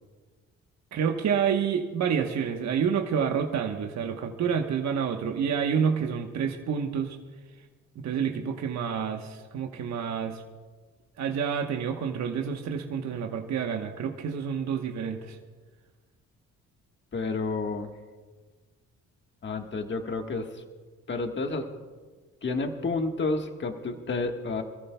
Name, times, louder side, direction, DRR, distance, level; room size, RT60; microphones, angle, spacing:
voice 1, 0.9-7.2 7.9-10.4 11.2-15.4, right 7 dB, 65° right, 3 dB, 1.1 m, -28 dB
voice 2, 17.1-17.9 19.4-20.6 21.1-21.7 22.4-24.6, left 3 dB, 40° left, 4 dB, 1.5 m, -30 dB
26.0 x 14.0 x 2.3 m, 1.4 s
cardioid pair, 90°, 30 cm